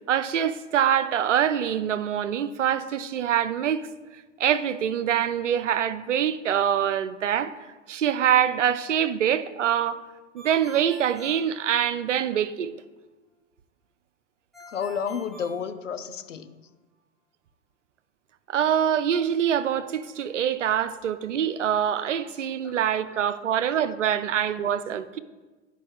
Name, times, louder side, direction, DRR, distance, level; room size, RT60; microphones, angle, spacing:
voice 1, 0.1-3.9 4.4-7.5 7.9-10.0 10.3-12.7 18.5-25.2, right 9 dB, 80° right, 0.5 m, -24 dB
Ringtone, 10.4-12.3 14.5-16.4, equal, ahead, 2.3 m, -47 dB
voice 2, 14.7-16.6 22.3-23.3 23.8-23.9, left 7 dB, 85° left, 0.5 m, -33 dB
9.0 x 5.2 x 3.3 m
figure-of-eight pair, 90°, 36 cm